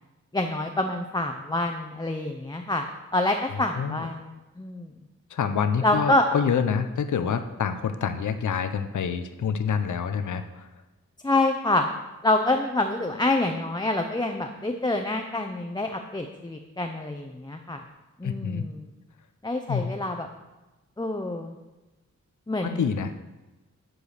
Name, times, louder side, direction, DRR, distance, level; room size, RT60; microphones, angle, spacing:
voice 1, 0.3-2.9 3.1-4.9 5.8-6.2 11.2-11.9 12.2-17.8 18.2-18.8 19.4-20.3 21.0-21.5 22.5-22.9, left 2 dB, 15° left, 3 dB, 0.8 m, -26 dB
voice 2, 3.5-4.1 5.3-10.7 18.2-18.6 19.7-19.9 22.6-23.2, left 6 dB, 85° left, 10 dB, 0.7 m, -27 dB
10.0 x 4.8 x 6.6 m, 1.1 s
cardioid pair, 65°, 29 cm